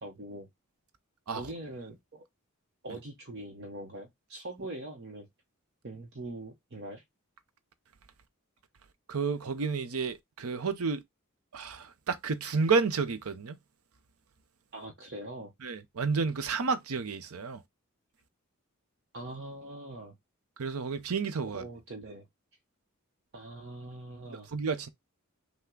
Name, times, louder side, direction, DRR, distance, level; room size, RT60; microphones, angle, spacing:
voice 1, 0.0-0.5 1.3-2.2 2.8-5.3 5.8-7.0 14.7-15.5 19.1-20.2 21.4-22.3 23.3-24.5, right 1 dB, 50° right, 0.9 m, -42 dB
voice 2, 9.1-11.0 11.5-13.6 15.6-17.6 20.6-21.6 24.3-24.9, right 4 dB, 85° right, 0.7 m, -31 dB
5.7 x 2.2 x 3.7 m
head